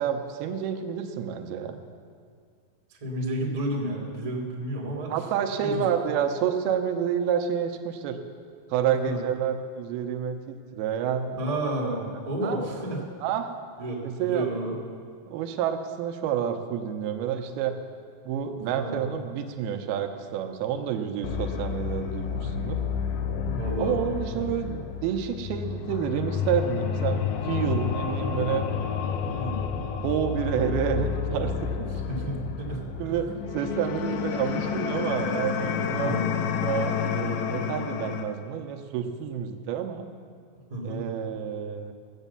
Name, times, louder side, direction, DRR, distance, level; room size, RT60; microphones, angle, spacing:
voice 1, 0.0-1.8 5.1-8.2 8.7-11.4 12.4-12.6 13.2-13.5 14.0-14.5 15.3-17.8 18.3-22.8 23.8-28.6 29.9-31.9 33.0-36.3 36.6-40.1 40.8-41.9, right 8 dB, 85° right, 6 dB, 2.7 m, -29 dB
voice 2, 3.0-5.2 5.6-5.8 9.0-9.2 11.4-13.0 13.8-14.7 18.7-19.0 23.4-23.9 24.3-24.5 29.3-29.6 32.1-33.3 36.0-36.2 40.7-41.0, right 1 dB, 40° right, -2 dB, 0.5 m, -31 dB
sound 1, 21.2-38.2, left 7 dB, 85° left, 2.6 m, -30 dB
14.5 x 8.2 x 6.8 m, 2.1 s
omnidirectional pair, 4.4 m